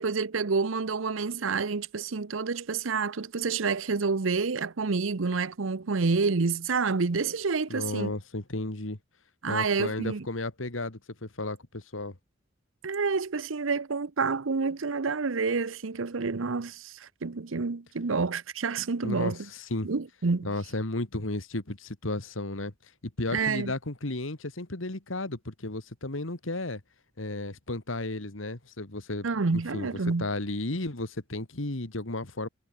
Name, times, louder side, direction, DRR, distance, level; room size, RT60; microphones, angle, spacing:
voice 1, 0.0-8.1 9.4-10.3 12.8-19.4 19.8-20.5 23.3-23.7 29.2-30.3, right 4 dB, 85° right, 0.8 m, -28 dB
voice 2, 7.7-9.0 9.5-12.2 19.0-19.9 20.4-22.7 23.0-26.8 27.2-29.3 29.5-29.9 30.2-32.5, left 2 dB, 80° left, 2.4 m, -33 dB
head